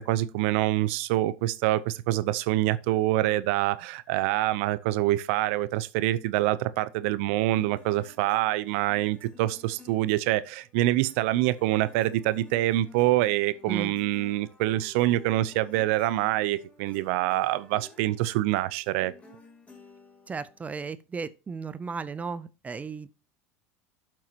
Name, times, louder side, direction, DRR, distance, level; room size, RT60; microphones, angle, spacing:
voice 1, 0.0-19.1, right 15 dB, 70° right, 0.6 m, -26 dB
sound 1, 7.6-20.8, left 3 dB, 15° left, 3.2 m, -54 dB
voice 2, 20.3-23.1, right 5 dB, 20° right, 0.5 m, -35 dB
12.0 x 7.6 x 2.9 m
supercardioid pair, 110°, 7 cm